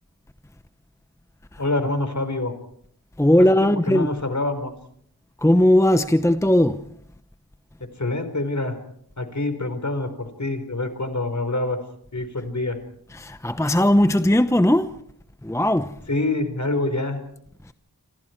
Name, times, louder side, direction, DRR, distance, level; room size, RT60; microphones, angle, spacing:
voice 1, 1.6-2.5 3.6-4.7 8.0-8.8 9.2-11.8 12.1-12.8 16.1-17.2, left 2 dB, 50° left, 4.6 m, -26 dB
voice 2, 3.2-4.1 5.4-6.9 13.1-15.0 15.4-16.0 17.6-17.7, left 1 dB, 10° left, 0.8 m, -18 dB
27.5 x 26.5 x 4.6 m
wide cardioid pair, 65°, 36 cm